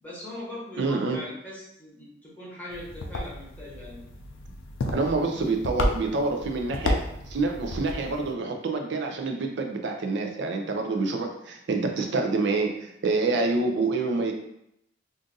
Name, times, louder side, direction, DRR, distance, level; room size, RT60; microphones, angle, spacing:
voice 1, 0.0-4.0, left 1 dB, 10° left, -7 dB, 0.9 m, -40 dB
voice 2, 0.8-1.2 4.9-7.0 7.3-14.3, right 3 dB, 60° right, 3 dB, 0.5 m, -27 dB
sound 1, 2.7-8.3, left 1 dB, 85° left, 0.5 m, -32 dB
2.6 x 2.5 x 3.8 m, 0.79 s
head